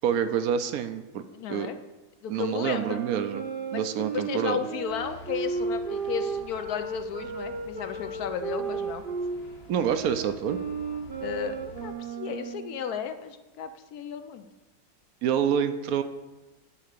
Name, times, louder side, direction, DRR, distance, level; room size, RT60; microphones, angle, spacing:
voice 1, 0.0-1.2 1.5-1.7 2.3-3.4 3.7-4.6 9.7-10.6 15.2-16.0, right 8 dB, 70° right, 10 dB, 0.9 m, -27 dB
voice 2, 1.3-1.8 2.2-3.0 3.7-3.9 4.1-9.0 11.2-14.5, left 7 dB, 70° left, 9 dB, 1.0 m, -34 dB
sound 1, 2.7-9.4 9.8-12.8, right 5 dB, 45° right, 0.8 m, -34 dB
sound 2, 4.9-12.0, equal, 50° left, 1.5 m, -49 dB
10.5 x 4.1 x 6.7 m, 1.1 s
omnidirectional pair, 1.9 m